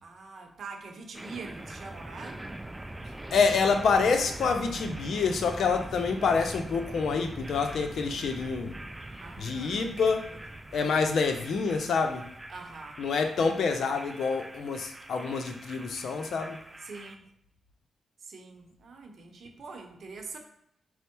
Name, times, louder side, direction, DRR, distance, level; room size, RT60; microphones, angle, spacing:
voice 1, 0.0-2.5 9.2-10.0 12.5-13.0 16.8-17.3 18.2-20.4, right 4 dB, 65° right, 3 dB, 0.7 m, -44 dB
sound 1, 1.1-17.1, right 1 dB, 20° right, 0.3 m, -43 dB
voice 2, 3.3-8.7 9.4-10.3 10.7-12.3 13.0-16.6, left 5 dB, 75° left, 6 dB, 0.5 m, -27 dB
4.3 x 2.1 x 4.4 m, 0.72 s
cardioid pair, 65°, 0 cm